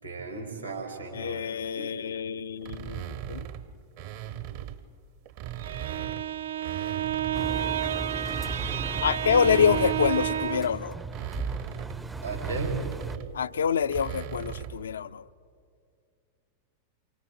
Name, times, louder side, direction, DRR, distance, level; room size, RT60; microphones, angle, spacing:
voice 1, 0.0-1.5 1.8-2.0 12.2-12.8, right 4 dB, 80° right, 1 dB, 3.8 m, -35 dB
voice 2, 1.1-3.5 9.0-11.0 13.3-15.2, left 7 dB, 65° left, 16 dB, 0.4 m, -26 dB
sound 1, 2.6-4.8 5.3-7.7 8.1-14.9, right 10 dB, 50° right, 0.9 m, -39 dB
Bowed string instrument, 5.5-10.8, right 11 dB, 65° right, 0.4 m, -31 dB
Engine, 7.3-13.2, right 3 dB, 10° right, 0.5 m, -36 dB
28.0 x 24.5 x 3.9 m, 2.4 s
figure-of-eight pair, 90°, 0 cm